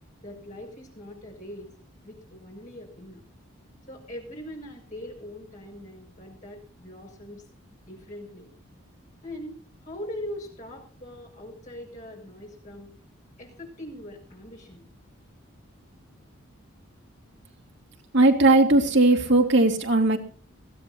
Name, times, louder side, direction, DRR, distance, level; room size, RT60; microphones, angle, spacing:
voice 1, 0.2-1.7 2.0-3.2 3.9-7.4 7.8-8.5 9.2-9.5 9.8-12.9 13.4-14.8, left 1 dB, 35° left, 1 dB, 6.6 m, -41 dB
voice 2, 18.1-20.2, right 2 dB, 55° right, 4 dB, 2.1 m, -18 dB
21.5 x 15.5 x 2.6 m, 0.42 s
head